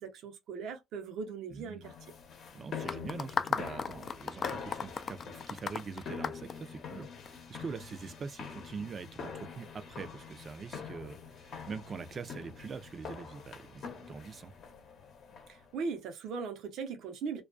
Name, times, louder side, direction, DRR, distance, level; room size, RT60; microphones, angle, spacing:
voice 1, 0.0-1.9 15.5-17.4, right 5 dB, 85° right, 0.7 m, -39 dB
voice 2, 1.5-1.9 2.5-14.5, right 5 dB, 45° right, 0.4 m, -44 dB
sound 1, 1.8-15.7, left 6 dB, 70° left, 0.7 m, -45 dB
sound 2, 2.9-7.3, left 6 dB, 50° left, 0.3 m, -35 dB
2.3 x 2.2 x 2.4 m
cardioid pair, 90°, 0 cm